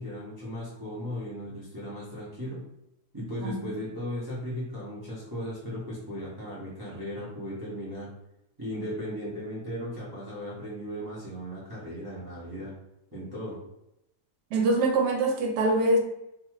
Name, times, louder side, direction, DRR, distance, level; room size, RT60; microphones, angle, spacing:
voice 1, 0.0-2.6 3.1-8.1 8.6-12.7 13.1-13.6, equal, 40° right, -8 dB, 0.3 m, -36 dB
voice 2, 3.4-3.7 14.5-16.0, right 2 dB, 80° right, 2 dB, 1.2 m, -24 dB
2.7 x 2.3 x 3.0 m, 0.85 s
omnidirectional pair, 1.7 m